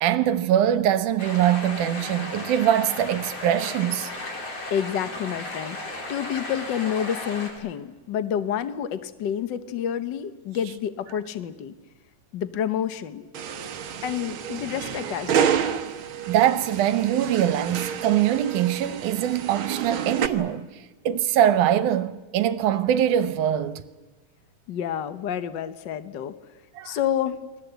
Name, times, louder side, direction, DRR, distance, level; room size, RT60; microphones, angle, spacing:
voice 1, 0.0-4.1 16.3-20.7 21.1-23.8 26.8-27.0, right 11 dB, 80° right, 2.4 m, -23 dB
sound 1, 1.2-7.5, left 2 dB, 50° left, 5.5 m, -35 dB
voice 2, 4.7-5.8 6.1-11.7 12.3-13.3 14.0-15.6 24.7-26.3 26.8-27.4, left 9 dB, 90° left, 0.9 m, -29 dB
sound 2, 13.3-20.3, right 8 dB, 55° right, 1.5 m, -29 dB
29.0 x 21.5 x 8.1 m
omnidirectional pair, 3.6 m